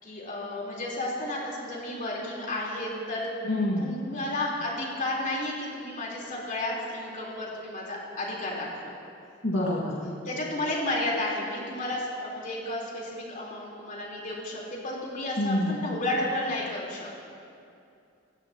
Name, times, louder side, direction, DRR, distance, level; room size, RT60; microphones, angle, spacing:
voice 1, 0.0-3.3 3.8-9.0 10.0-17.2, left 1 dB, 45° left, -4 dB, 4.3 m, -32 dB
voice 2, 3.4-3.9 9.4-10.0 15.4-15.9, left 1 dB, 75° left, -5 dB, 2.2 m, -27 dB
29.0 x 16.0 x 3.1 m, 2.5 s
head